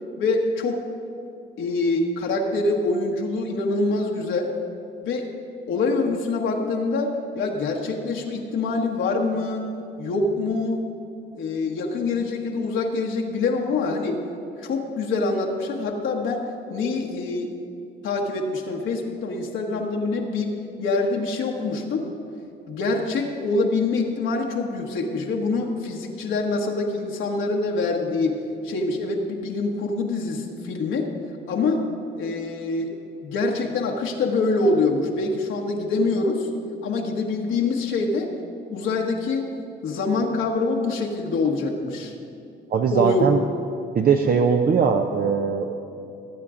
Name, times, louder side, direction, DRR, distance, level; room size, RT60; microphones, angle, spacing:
voice 1, 0.2-0.8 1.6-4.5 5.0-5.3 5.7-9.6 10.0-10.9 11.3-14.2 14.6-16.4 16.7-17.5 18.0-22.1 22.7-28.4 28.6-31.1 31.5-31.8 32.2-32.9 33.2-36.5 36.8-38.3 38.7-39.4 39.8-42.1 42.9-43.3, left 3 dB, 80° left, 0 dB, 1.3 m, -25 dB
voice 2, 42.7-43.4 43.9-45.7, right 6 dB, 50° right, 4 dB, 0.6 m, -20 dB
18.0 x 8.4 x 3.8 m, 2.7 s
cardioid pair, 90°, 20 cm